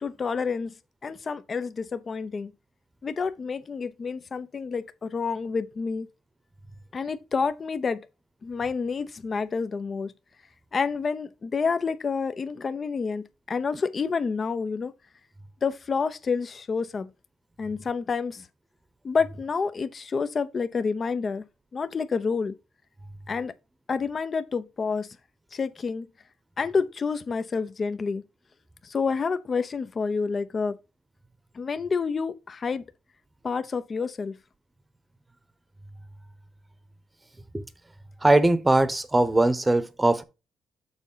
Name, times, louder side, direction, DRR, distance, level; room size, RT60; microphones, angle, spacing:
voice 1, 0.0-0.7 1.0-2.5 3.0-6.1 6.9-8.1 8.4-10.1 10.7-14.9 15.6-17.1 17.6-18.5 19.0-21.4 21.7-22.5 23.3-23.5 23.9-25.1 25.5-26.1 26.6-28.2 28.8-30.8 31.5-32.8 33.4-34.4, left 5 dB, 40° left, 0.7 m, -28 dB
voice 2, 38.2-40.2, right 2 dB, 15° right, 1.0 m, -20 dB
7.1 x 3.9 x 5.6 m
cardioid pair, 90°, 0 cm